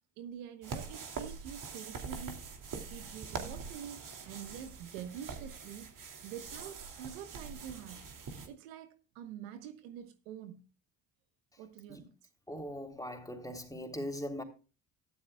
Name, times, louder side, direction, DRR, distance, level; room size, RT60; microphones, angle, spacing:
voice 1, 0.2-8.1 8.5-10.6 11.6-12.1, right 9 dB, 90° right, 1.3 m, -46 dB
sound 1, 0.6-8.5, right 5 dB, 50° right, 2.7 m, -44 dB
voice 2, 12.5-14.4, equal, 10° left, 3.6 m, -40 dB
14.0 x 12.0 x 2.3 m
hypercardioid pair, 60°, 40 cm